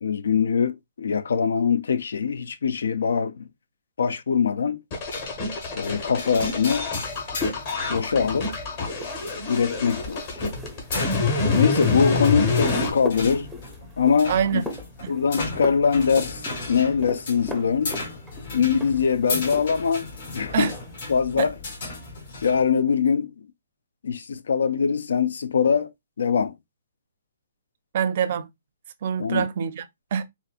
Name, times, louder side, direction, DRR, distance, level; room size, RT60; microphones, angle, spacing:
voice 1, 0.0-3.5 4.0-4.8 5.7-6.9 7.9-8.5 9.5-10.2 11.5-13.5 14.0-14.4 15.1-16.4 16.7-18.0 18.5-20.1 20.3-20.7 21.1-21.5 22.4-23.5 24.0-25.9 26.2-26.5 29.2-29.5, left 6 dB, 80° left, 0.4 m, -22 dB
sound 1, 4.9-12.9, left 4 dB, 40° left, 1.1 m, -26 dB
sound 2, 5.1-22.6, left 3 dB, 60° left, 1.7 m, -36 dB
sound 3, 6.9-20.0 20.3-21.0, left 1 dB, ahead, 0.6 m, -39 dB
voice 2, 14.3-14.7 15.0-15.1 20.5-20.8 21.4-21.5 27.9-28.5 29.0-30.2, right 8 dB, 50° right, 0.5 m, -25 dB
4.1 x 2.4 x 2.4 m
hypercardioid pair, 150°, 0 cm